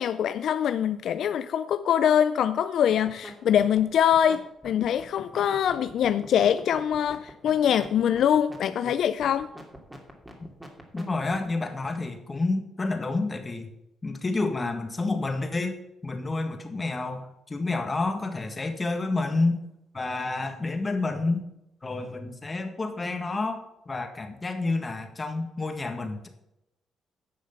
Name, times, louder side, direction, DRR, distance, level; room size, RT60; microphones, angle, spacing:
voice 1, 0.0-9.5, left 9 dB, 70° left, 0.4 m, -24 dB
sound 1, 2.9-3.3 3.6-11.5, equal, 10° right, 2.5 m, -44 dB
voice 2, 10.9-13.7 14.0-19.6 19.9-21.4 21.8-26.3, left 3 dB, 25° left, 1.7 m, -29 dB
10.5 x 6.3 x 5.8 m
cardioid pair, 90°, 0 cm